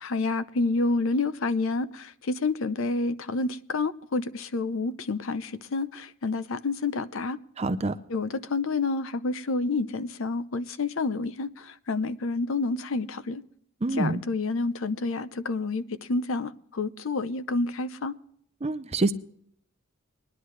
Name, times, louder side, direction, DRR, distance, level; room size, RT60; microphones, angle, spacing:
voice 1, 0.0-7.4 8.1-13.4 13.9-18.1, left 3 dB, 75° left, 0.7 m, -29 dB
voice 2, 7.6-7.9 13.8-14.2 18.6-19.1, right 2 dB, 30° right, 0.6 m, -26 dB
21.0 x 10.5 x 3.2 m
head